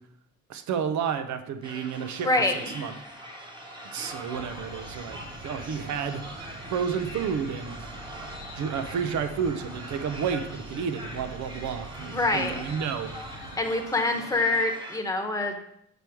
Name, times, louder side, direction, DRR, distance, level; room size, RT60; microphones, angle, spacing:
voice 1, 0.5-2.3 2.7-2.9 3.9-6.2 6.7-7.9 8.5-13.2, right 7 dB, 70° right, 9 dB, 0.8 m, -31 dB
sound 1, 1.6-15.0, right 1 dB, 15° right, 1.3 m, -42 dB
voice 2, 2.2-2.7 12.1-12.6 13.6-15.6, left 2 dB, 10° left, 4 dB, 1.1 m, -25 dB
Insect / Frog, 4.3-13.5, right 2 dB, 40° right, 2.1 m, -44 dB
6.2 x 5.1 x 4.6 m, 0.73 s
cardioid pair, 90°, 30 cm